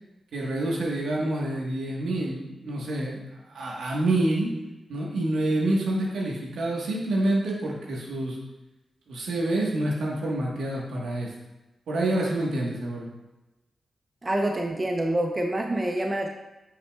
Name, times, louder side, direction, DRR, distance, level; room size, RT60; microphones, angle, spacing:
voice 1, 0.3-4.5 4.9-8.4 9.1-11.3 11.9-13.1, right 1 dB, 80° right, -3 dB, 1.4 m, -27 dB
voice 2, 14.2-16.3, right 1 dB, 30° right, 2 dB, 0.8 m, -26 dB
8.5 x 5.3 x 2.4 m, 1.0 s
supercardioid pair, 40°, 0 cm